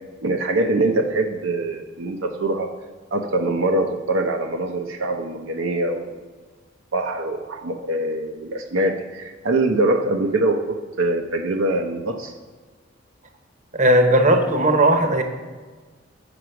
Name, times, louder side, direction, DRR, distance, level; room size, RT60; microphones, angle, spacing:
voice 1, 0.2-2.7 3.1-6.1 6.9-12.3, right 2 dB, 70° right, 4 dB, 0.7 m, -23 dB
voice 2, 13.7-15.2, right 1 dB, 40° right, 6 dB, 0.9 m, -17 dB
7.8 x 6.0 x 5.8 m, 1.4 s
head